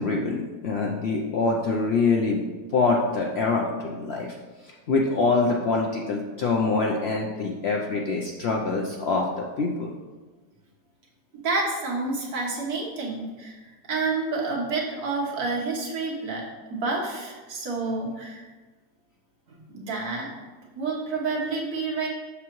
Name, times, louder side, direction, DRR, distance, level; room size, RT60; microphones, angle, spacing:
voice 1, 0.0-2.4 2.7-4.4 4.9-9.9, left 3 dB, 65° left, 0 dB, 0.6 m, -25 dB
voice 2, 11.4-13.6 13.9-16.4 16.7-18.4 19.5-20.3 20.7-22.1, right 3 dB, 70° right, -3 dB, 1.8 m, -29 dB
7.0 x 6.1 x 3.0 m, 1.3 s
omnidirectional pair, 1.7 m